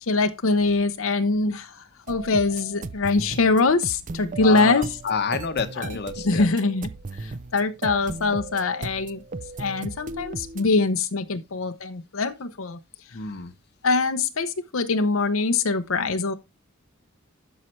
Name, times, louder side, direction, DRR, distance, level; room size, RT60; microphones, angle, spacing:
voice 1, 0.0-4.9 5.8-6.0 6.2-6.9 7.2-9.2 9.6-12.8 13.8-16.3, left 3 dB, 80° left, 0.8 m, -23 dB
sound 1, 2.1-10.6, right 3 dB, 40° right, 0.5 m, -36 dB
voice 2, 4.4-6.5 13.1-13.5, left 5 dB, 55° left, 1.0 m, -29 dB
12.0 x 5.6 x 3.2 m
head